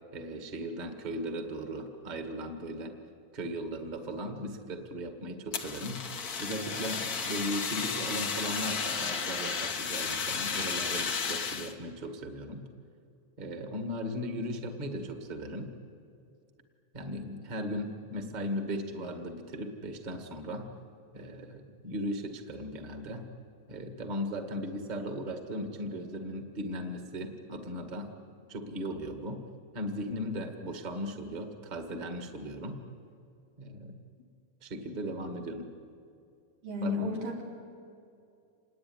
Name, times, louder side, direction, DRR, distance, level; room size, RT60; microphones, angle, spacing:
voice 1, 0.1-3.0 3.3-6.0 6.4-12.6 13.4-15.7 16.9-20.7 21.1-23.2 23.7-28.1 28.5-29.4 29.7-32.8 33.6-34.0 34.6-35.7 36.8-36.9, equal, 20° right, 5 dB, 1.5 m, -37 dB
Fire, 5.5-11.7, left 5 dB, 65° left, 0.9 m, -33 dB
voice 2, 36.6-37.4, left 2 dB, 85° right, -1 dB, 5.8 m, -32 dB
27.0 x 20.0 x 9.8 m, 2.5 s
omnidirectional pair, 3.7 m